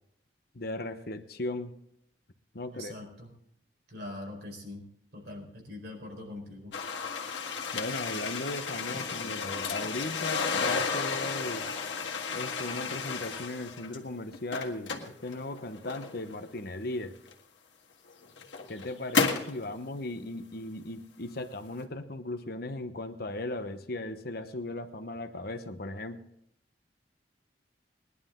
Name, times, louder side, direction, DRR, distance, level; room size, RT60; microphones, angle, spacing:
voice 1, 0.5-1.7 2.5-3.0 7.7-11.7 12.3-17.2 18.7-26.2, left 2 dB, 60° left, 8 dB, 1.0 m, -37 dB
voice 2, 2.7-3.3 3.9-6.8, left 1 dB, 65° right, 0 dB, 4.5 m, -43 dB
sound 1, 6.7-14.0 14.3-16.3 17.3-17.4 18.1-19.6, left 5 dB, 85° left, 1.7 m, -33 dB
19.5 x 11.0 x 3.8 m, 0.74 s
head